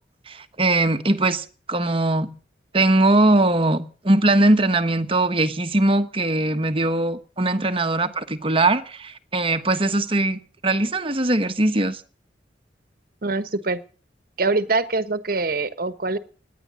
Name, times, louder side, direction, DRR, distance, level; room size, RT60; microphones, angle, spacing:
voice 1, 0.3-2.3 2.7-12.0, right 2 dB, 30° right, 1.2 m, -21 dB
voice 2, 13.2-13.8 14.4-16.2, right 3 dB, 55° right, 1.2 m, -24 dB
18.0 x 10.5 x 6.4 m
head